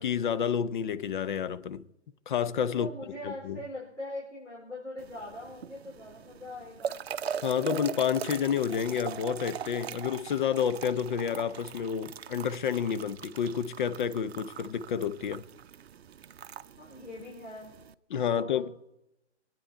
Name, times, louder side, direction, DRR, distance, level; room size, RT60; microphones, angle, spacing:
voice 1, 0.0-1.9 2.3-2.9 3.2-3.6 7.4-15.4 18.1-18.7, left 8 dB, 45° left, 0.7 m, -29 dB
voice 2, 2.7-7.0 16.8-17.7 18.3-18.6, left 2 dB, 85° left, 4.4 m, -41 dB
sound 1, 5.0-17.9, right 8 dB, 60° right, 0.6 m, -41 dB
22.5 x 9.2 x 4.5 m
figure-of-eight pair, 125°, 35 cm